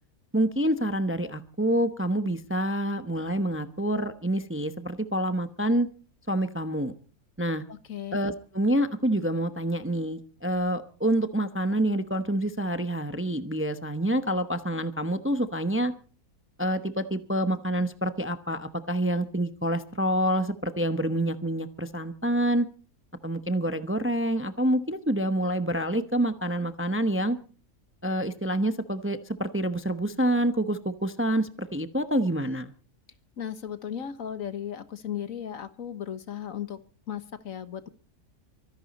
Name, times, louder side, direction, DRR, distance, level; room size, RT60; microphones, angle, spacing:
voice 1, 0.3-5.9 6.3-6.9 7.4-7.6 8.1-15.9 16.6-22.7 23.2-27.4 28.0-32.7, right 1 dB, 10° right, 10 dB, 0.7 m, -27 dB
voice 2, 7.7-8.2 33.4-36.8 37.1-37.9, left 9 dB, 65° left, 12 dB, 1.6 m, -36 dB
24.5 x 11.0 x 4.2 m, 0.39 s
omnidirectional pair, 1.5 m